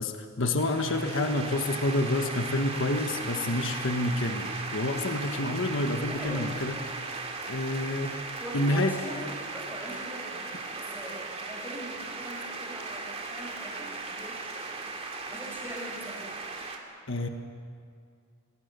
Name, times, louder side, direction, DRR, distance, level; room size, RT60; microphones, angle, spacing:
voice 1, 0.0-6.8 7.5-8.3 8.5-8.9 17.1-17.3, left 1 dB, 60° left, 5 dB, 1.4 m, -28 dB
sound 1, 0.6-16.8, right 3 dB, 30° right, 2.6 m, -37 dB
voice 2, 6.1-6.6 8.4-14.9 15.3-16.3, equal, 10° right, -4 dB, 6.9 m, -42 dB
23.5 x 23.0 x 6.9 m, 2.3 s
head